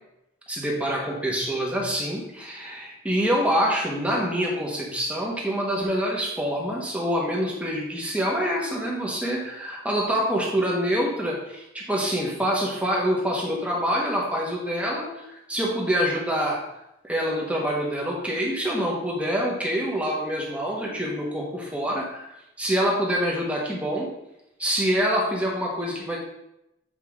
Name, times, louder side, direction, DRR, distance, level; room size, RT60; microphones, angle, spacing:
voice 1, 0.5-16.6 17.0-24.1 24.6-26.2, equal, 5° right, -2 dB, 1.4 m, -26 dB
8.3 x 4.7 x 3.7 m, 0.87 s
head